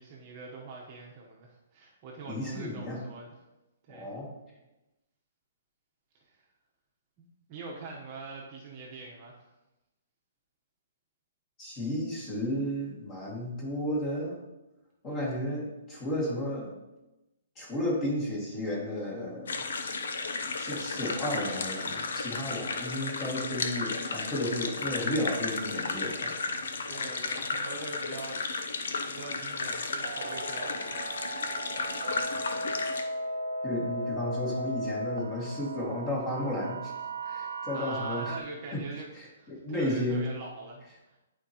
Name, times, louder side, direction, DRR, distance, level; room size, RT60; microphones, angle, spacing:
voice 1, 0.0-3.3 3.9-4.1 6.3-6.4 7.5-9.4 15.0-15.4 26.9-28.4 28.7-31.0 37.4-39.1 39.3-41.2, right 3 dB, 30° right, -2 dB, 1.1 m, -43 dB
voice 2, 2.3-3.0 3.9-4.3 11.6-14.4 15.0-16.8 17.6-19.7 20.6-26.3 33.6-36.9 37.2-38.3 38.7-38.8 39.1-39.3 39.5-40.3, left 1 dB, 20° left, -4 dB, 2.3 m, -33 dB
sound 1, 19.5-33.0, left 4 dB, 75° left, 0.8 m, -34 dB
sound 2, 30.0-38.4, right 1 dB, 70° right, 0.7 m, -36 dB
11.0 x 4.5 x 3.0 m, 1.0 s
hypercardioid pair, 165°, 0 cm